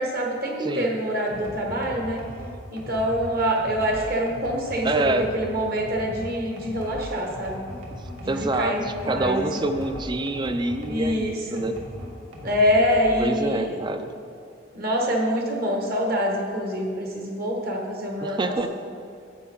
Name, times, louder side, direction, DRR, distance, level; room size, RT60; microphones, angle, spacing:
voice 1, 0.0-2.2 2.7-7.6 8.2-9.5 10.8-11.6 12.4-13.8 14.7-18.7, equal, 45° right, 0 dB, 1.3 m, -25 dB
voice 2, 0.6-0.9 4.8-5.4 7.9-11.8 13.2-14.1 18.2-18.7, right 2 dB, 20° right, 8 dB, 0.4 m, -27 dB
sound 1, 1.3-11.2 11.6-13.3, equal, 80° right, 1.6 m, -39 dB
9.8 x 7.8 x 3.8 m, 2.5 s
head